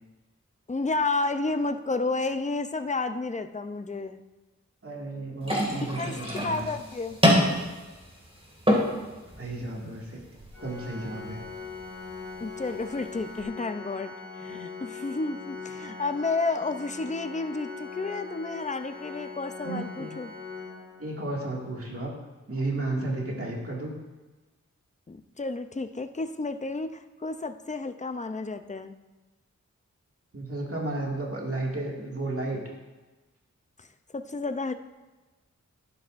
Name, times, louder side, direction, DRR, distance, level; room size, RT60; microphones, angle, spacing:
voice 1, 0.7-4.2 5.7-7.2 12.4-20.3 25.1-29.0 33.8-33.9 34.1-34.7, left 3 dB, 25° left, 9 dB, 0.5 m, -31 dB
voice 2, 4.8-6.7 9.4-10.2 10.6-11.4 19.6-20.1 21.0-22.1 22.5-23.9 30.3-32.6, right 2 dB, 50° right, -2 dB, 2.1 m, -33 dB
sound 1, 5.4-13.4, equal, 20° right, 2.2 m, -29 dB
Organ, 10.5-21.4, left 4 dB, 80° left, 2.3 m, -41 dB
11.5 x 11.0 x 2.6 m, 1.2 s
wide cardioid pair, 65°, 30 cm